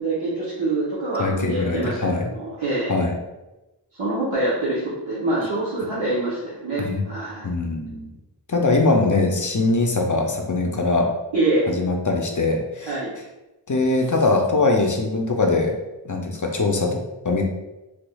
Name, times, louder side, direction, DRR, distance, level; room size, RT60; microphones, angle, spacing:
voice 1, 0.0-2.9 3.9-7.5 11.3-11.7 12.8-13.1, right 2 dB, 85° right, -9 dB, 0.9 m, -25 dB
voice 2, 1.2-2.3 2.9-3.2 6.8-7.1 7.4-8.1 8.5-11.1 11.7-13.0 13.7-15.7 16.0-17.4, left 3 dB, 45° left, 2 dB, 0.5 m, -22 dB
3.3 x 3.2 x 2.3 m, 1.0 s
wide cardioid pair, 45°, 46 cm